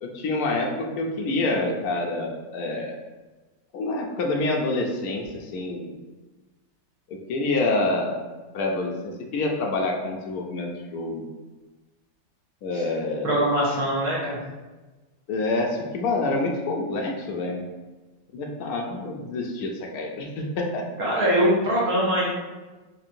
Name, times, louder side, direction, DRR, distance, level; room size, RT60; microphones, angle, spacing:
voice 1, 0.0-2.9 3.7-5.9 7.1-8.2 8.5-11.2 12.6-13.3 15.3-17.6 18.3-20.8, left 2 dB, 85° left, 0 dB, 0.8 m, -27 dB
voice 2, 13.2-14.4 21.0-22.3, equal, 60° right, -5 dB, 1.0 m, -22 dB
4.4 x 2.7 x 2.5 m, 1.2 s
omnidirectional pair, 2.1 m